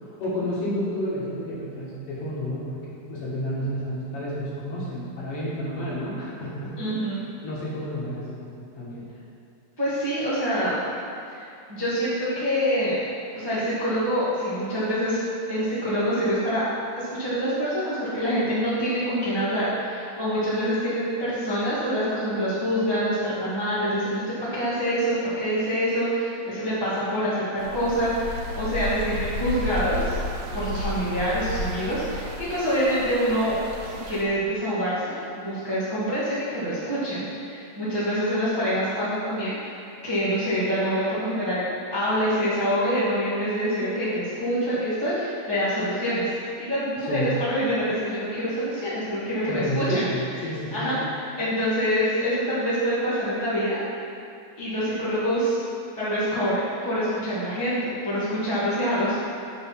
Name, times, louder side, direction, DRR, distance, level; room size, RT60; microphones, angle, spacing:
voice 1, 0.0-6.8 7.1-9.1 47.0-47.3 49.5-50.9, equal, 55° left, -7 dB, 2.1 m, -31 dB
voice 2, 6.8-7.2 9.8-10.8 11.3-13.0 13.3-15.2 15.5-16.6 16.9-24.2 24.5-30.2 30.5-33.5 33.8-39.6 40.0-46.3 46.6-50.1 50.7-53.8 54.6-55.6 56.0-57.8 58.0-59.2, equal, 30° right, -11 dB, 0.4 m, -26 dB
sound 1, 27.6-34.2, equal, 75° right, 2.1 m, -32 dB
6.5 x 4.6 x 5.7 m, 2.7 s
omnidirectional pair, 3.5 m